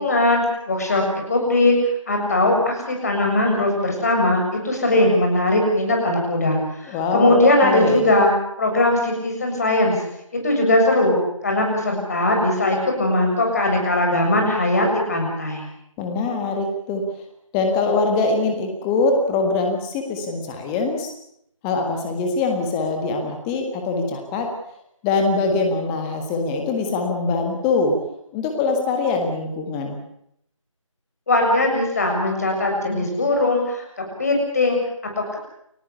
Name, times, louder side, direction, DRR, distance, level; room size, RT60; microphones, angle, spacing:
voice 1, 0.0-1.7 2.1-8.3 8.6-10.0 10.4-15.6 31.3-34.8, left 2 dB, 30° left, 2 dB, 7.0 m, -20 dB
voice 2, 6.9-8.1 16.0-17.0 17.5-21.1 21.6-24.5 25.0-27.9 28.3-30.0, left 3 dB, 5° left, 4 dB, 1.6 m, -23 dB
29.5 x 15.0 x 8.4 m, 0.75 s
figure-of-eight pair, 160°, 17 cm